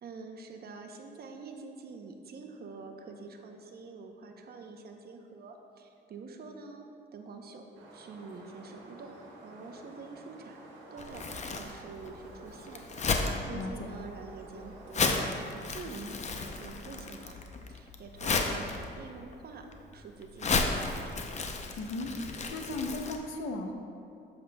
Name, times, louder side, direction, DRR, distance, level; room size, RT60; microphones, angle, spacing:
voice 1, 0.0-6.8 7.1-7.7 7.9-10.6 10.9-17.4 17.7-21.2, right 4 dB, 50° right, 4 dB, 0.7 m, -46 dB
sound 1, 7.7-15.3, right 2 dB, 80° right, 1.2 m, -51 dB
Crumpling crinkling, 11.0-23.2, left 4 dB, 35° left, 0.6 m, -34 dB
voice 2, 13.5-13.9 21.8-22.1 22.5-23.7, left 2 dB, 80° left, 4 dB, 0.7 m, -36 dB
7.6 x 6.9 x 2.2 m, 2.5 s
cardioid pair, 90°, 20 cm